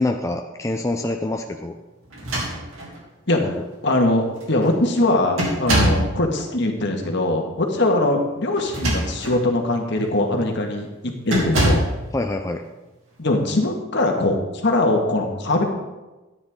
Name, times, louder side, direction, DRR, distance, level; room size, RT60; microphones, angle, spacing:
voice 1, 0.0-1.8 3.4-3.6 12.1-12.6, left 2 dB, 15° left, 4 dB, 0.5 m, -25 dB
sound 1, 2.1-3.0 3.9-4.0 4.4-4.7 5.4-6.1 8.6-9.4 10.0-10.2 11.3-12.0, right 1 dB, 85° right, 2.9 m, -23 dB
voice 2, 3.8-11.8 13.2-15.6, left 2 dB, 60° left, 2 dB, 1.7 m, -21 dB
13.0 x 9.7 x 3.7 m, 1.1 s
head